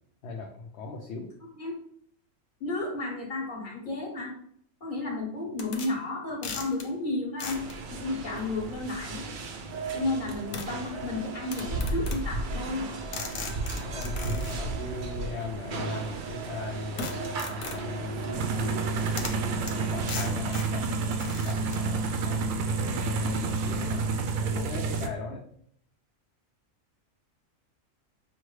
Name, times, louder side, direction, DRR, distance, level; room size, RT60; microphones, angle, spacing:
voice 1, 0.2-1.3 10.0-10.1 13.8-19.0 19.6-25.4, left 3 dB, 65° left, 1 dB, 0.8 m, -39 dB
voice 2, 2.6-4.3 4.8-9.3 9.9-12.9, left 2 dB, 40° left, -2 dB, 1.3 m, -32 dB
sound 1, 5.6-5.9 6.4-6.9 7.4-7.7 9.2-9.3 10.5-10.7 11.5-12.2 13.1-14.6 17.0-17.9 18.9-19.0 19.2-19.4 19.7-19.8 20.1-20.7 21.2-21.9, left 4 dB, 90° left, 1.1 m, -38 dB
sound 2, 7.4-20.3, right 3 dB, 65° right, 0.5 m, -35 dB
sound 3, 18.3-25.1, right 4 dB, 90° right, 1.0 m, -29 dB
6.2 x 2.1 x 3.1 m, 0.65 s
omnidirectional pair, 1.4 m